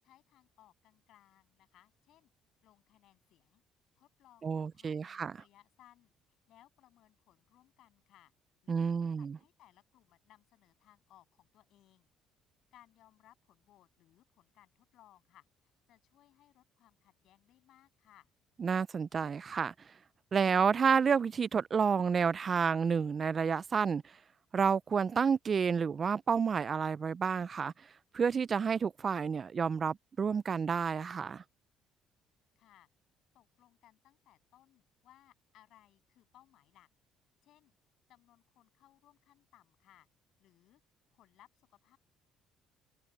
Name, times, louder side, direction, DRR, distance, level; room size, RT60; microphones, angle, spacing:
voice 1, 0.0-2.3 2.6-3.6 4.0-6.1 6.5-8.3 8.6-12.1 12.7-18.3 32.6-32.9 33.3-36.9 37.4-37.7 38.1-40.1 40.4-40.8 41.1-42.0, left 13 dB, 70° left, 7.5 m, -64 dB
voice 2, 4.4-5.4 8.7-9.4 18.6-19.7 20.3-24.1 24.5-27.7 28.1-31.4, right 6 dB, 40° right, 0.4 m, -30 dB
supercardioid pair, 75°, 0 cm